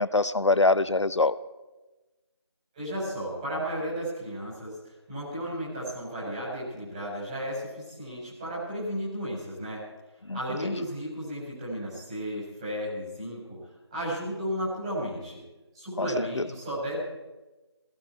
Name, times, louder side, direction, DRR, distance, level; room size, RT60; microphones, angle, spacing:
voice 1, 0.0-1.3 10.3-10.8 16.0-16.5, left 2 dB, 85° left, 15 dB, 0.8 m, -25 dB
voice 2, 2.7-9.8 10.3-15.4 15.7-17.0, equal, 15° right, -7 dB, 5.2 m, -34 dB
19.0 x 16.5 x 4.7 m, 1.1 s
figure-of-eight pair, 170°, 15 cm